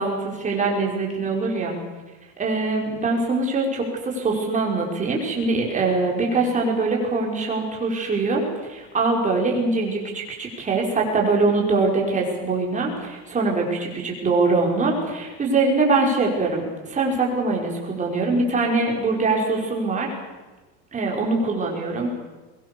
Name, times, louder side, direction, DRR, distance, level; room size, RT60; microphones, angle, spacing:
voice 1, 0.0-1.8 2.4-20.1 20.9-22.1, right 3 dB, 25° right, 0 dB, 5.5 m, -23 dB
23.0 x 21.0 x 7.1 m, 1.2 s
cardioid pair, 155°, 32 cm